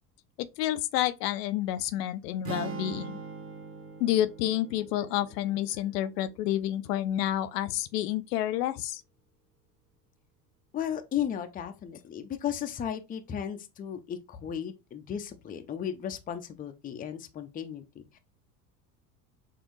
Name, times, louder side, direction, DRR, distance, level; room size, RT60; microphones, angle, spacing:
voice 1, 0.4-3.2 4.0-9.0, left 12 dB, 75° left, 0.5 m, -29 dB
sound 1, 2.5-6.6, right 5 dB, 30° right, 0.9 m, -42 dB
voice 2, 10.7-18.2, left 9 dB, 20° left, 0.5 m, -35 dB
4.4 x 2.4 x 3.0 m
hypercardioid pair, 85°, 49 cm